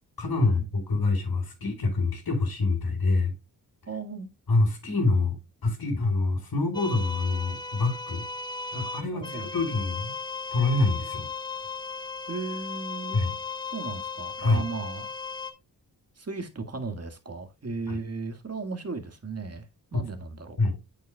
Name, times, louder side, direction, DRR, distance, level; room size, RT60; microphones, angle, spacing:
voice 1, 0.2-3.3 4.5-5.4 5.6-8.3 8.7-10.1 10.5-11.3 13.1-13.3 14.4-14.6 17.9-18.0 19.9-20.1 20.6-20.8, left 3 dB, 65° left, 3.8 m, -26 dB
voice 2, 3.9-4.3 9.1-9.5 12.3-13.2 13.7-15.1 16.2-19.6 19.9-20.6, right 3 dB, 40° right, 2.0 m, -36 dB
sound 1, 6.7-15.5, left 4 dB, 10° left, 1.6 m, -36 dB
8.2 x 7.3 x 2.3 m
cardioid pair, 70°, 40 cm